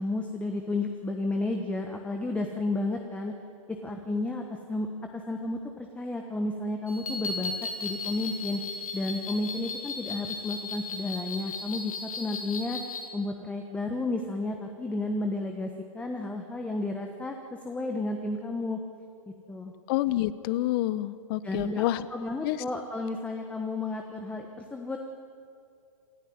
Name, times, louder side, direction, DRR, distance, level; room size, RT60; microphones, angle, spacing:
voice 1, 0.0-3.3 3.8-7.5 7.8-8.6 8.9-12.8 13.1-17.4 17.6-18.8 19.5-19.7 21.4-25.0, left 2 dB, 5° left, 3 dB, 1.2 m, -32 dB
sound 1, 6.9-13.1, left 4 dB, 90° left, 2.7 m, -36 dB
voice 2, 19.9-22.1 22.4-22.6, left 15 dB, 40° left, 16 dB, 0.9 m, -28 dB
27.0 x 11.5 x 9.4 m, 2.4 s
hypercardioid pair, 135°, 18 cm